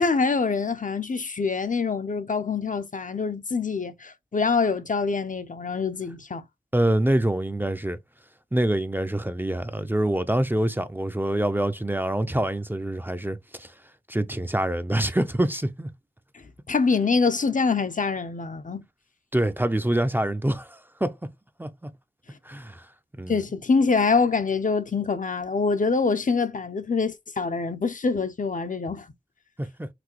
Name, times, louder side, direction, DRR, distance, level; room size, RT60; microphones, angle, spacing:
voice 1, 0.0-6.4 16.7-18.8 23.3-29.1, left 4 dB, 50° left, 0.6 m, -25 dB
voice 2, 6.7-8.0 8.5-13.7 14.1-15.9 19.3-21.1 21.6-21.9 22.5-22.9 23.2-23.4 29.6-29.9, right 1 dB, 10° right, 0.5 m, -25 dB
6.0 x 2.7 x 3.0 m
wide cardioid pair, 55°, 16 cm